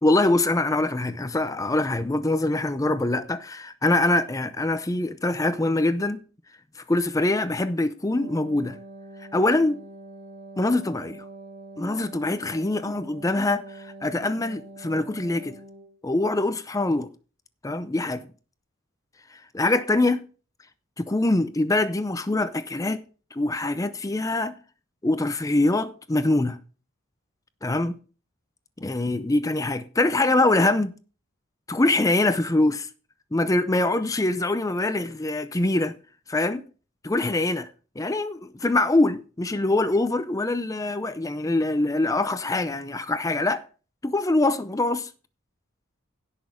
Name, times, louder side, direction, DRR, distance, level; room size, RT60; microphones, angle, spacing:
voice 1, 0.0-6.2 6.9-8.8 9.3-9.8 10.6-11.2 11.8-15.6 16.0-17.1 17.6-18.2 19.5-20.2 21.0-23.0 23.3-24.6 25.0-26.6 27.6-28.0 28.8-31.0 31.7-32.9 33.3-35.9 36.3-36.6 37.0-37.7 38.0-43.6 44.0-45.1, left 2 dB, 15° left, 0.5 m, -24 dB
Wind instrument woodwind instrument, 8.0-16.0, right 2 dB, 35° right, 1.7 m, -44 dB
16.5 x 6.1 x 3.7 m
head